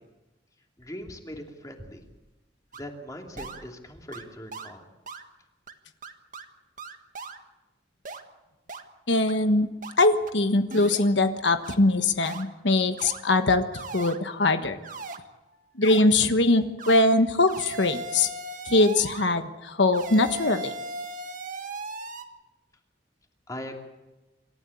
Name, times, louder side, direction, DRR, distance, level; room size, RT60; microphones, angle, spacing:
voice 1, 0.8-2.0 2.8-4.8 23.5-23.8, left 1 dB, 20° left, 2 dB, 2.8 m, -40 dB
sound 1, 2.7-2.8 3.4-3.6 4.1-4.2 4.5-4.7 5.1-5.2 5.7-5.8 6.0-6.4 6.8-7.4 8.0-8.2 8.7-8.8 9.3-9.4 9.8-9.9 10.3-10.4 10.7-11.1 11.6-11.7 12.2-12.4 13.0-13.2 13.7-14.2 14.8-15.2 15.8-16.0 16.8-17.0 17.5-19.3 19.9-22.2, right 3 dB, 45° right, 1.5 m, -37 dB
voice 2, 9.1-9.7 10.0-14.8 15.8-18.3 18.7-20.7, left 2 dB, 75° left, 8 dB, 1.3 m, -22 dB
26.5 x 13.5 x 8.4 m, 1.1 s
head